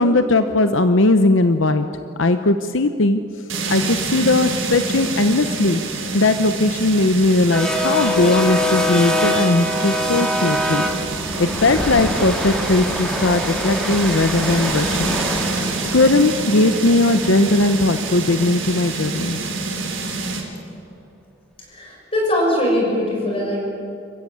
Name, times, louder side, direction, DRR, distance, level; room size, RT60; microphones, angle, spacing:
voice 1, 0.0-1.9 2.2-3.2 3.7-5.8 6.1-10.8 11.4-15.2 15.8-19.4, left 2 dB, 80° left, 9 dB, 0.9 m, -18 dB
sound 1, 3.5-20.4, right 3 dB, 75° right, 3.8 m, -27 dB
sound 2, 6.3-18.4, left 1 dB, 5° left, 2.4 m, -25 dB
voice 2, 21.7-23.6, left 1 dB, 30° left, -2 dB, 6.9 m, -21 dB
27.5 x 15.0 x 8.6 m, 2.7 s
head